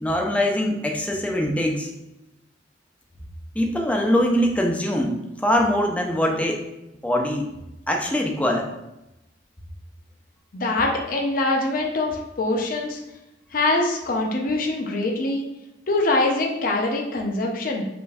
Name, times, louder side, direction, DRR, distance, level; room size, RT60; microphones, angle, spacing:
voice 1, 0.0-1.9 3.5-6.6 7.0-7.5 7.9-8.7, equal, 10° left, 1 dB, 0.4 m, -22 dB
voice 2, 10.5-13.0 13.5-15.4 15.9-17.9, left 2 dB, 50° left, 1 dB, 0.6 m, -23 dB
5.1 x 2.5 x 2.3 m, 0.93 s
head